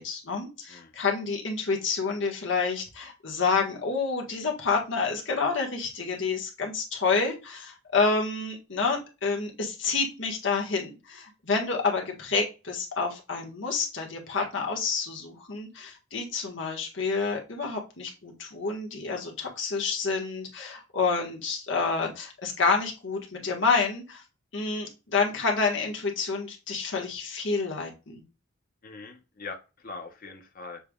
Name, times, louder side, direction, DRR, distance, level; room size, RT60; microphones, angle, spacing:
voice 1, 0.0-24.2 24.5-28.2, left 4 dB, 65° left, 1 dB, 1.4 m, -28 dB
voice 2, 28.8-30.8, left 4 dB, 45° left, 4 dB, 0.7 m, -42 dB
6.9 x 3.3 x 2.3 m, 0.30 s
head